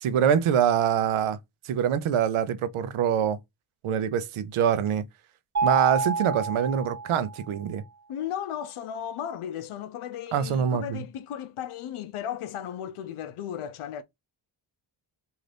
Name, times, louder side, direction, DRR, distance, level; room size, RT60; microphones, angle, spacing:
voice 1, 0.0-1.4 1.6-3.4 3.8-5.0 5.6-7.8 10.3-11.0, right 8 dB, 80° right, 0.6 m, -24 dB
Mallet percussion, 5.5-7.5, right 4 dB, 30° right, 1.0 m, -28 dB
voice 2, 8.1-14.0, left 10 dB, 85° left, 0.6 m, -35 dB
2.6 x 2.4 x 3.2 m
cardioid pair, 75°, 49 cm